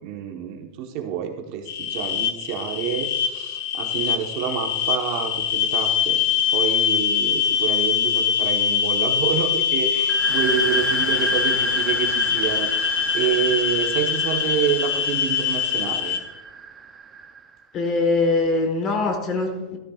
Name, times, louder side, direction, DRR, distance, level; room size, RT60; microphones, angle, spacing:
voice 1, 0.0-6.2 6.5-16.2, right 8 dB, 45° right, 3 dB, 1.1 m, -28 dB
sound 1, 1.7-16.2, left 8 dB, 60° left, 1.2 m, -23 dB
sound 2, 10.1-17.6, right 6 dB, 15° right, 0.5 m, -31 dB
voice 2, 17.7-19.8, left 3 dB, 25° left, 5 dB, 1.3 m, -22 dB
13.0 x 11.5 x 2.4 m, 1.1 s
supercardioid pair, 165°, 0 cm